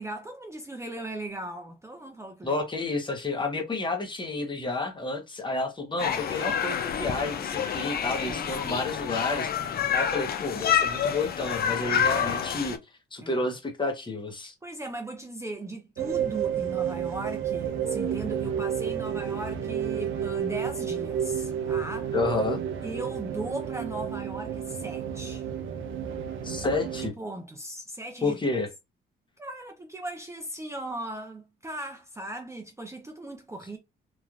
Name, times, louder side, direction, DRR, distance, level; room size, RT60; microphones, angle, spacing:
voice 1, 0.0-2.6 8.3-8.7 13.2-13.5 14.6-22.1 22.8-25.4 27.2-28.4 29.4-33.8, right 1 dB, 15° right, 0.5 m, -38 dB
voice 2, 2.4-12.8 13.1-14.5 22.1-22.6 26.4-27.1 28.2-28.7, left 3 dB, 25° left, 0.9 m, -30 dB
sound 1, 6.0-12.8, left 8 dB, 50° left, 0.5 m, -28 dB
sound 2, 16.0-27.1, right 9 dB, 85° right, 0.6 m, -31 dB
3.1 x 2.4 x 2.4 m
cardioid pair, 90°, 20 cm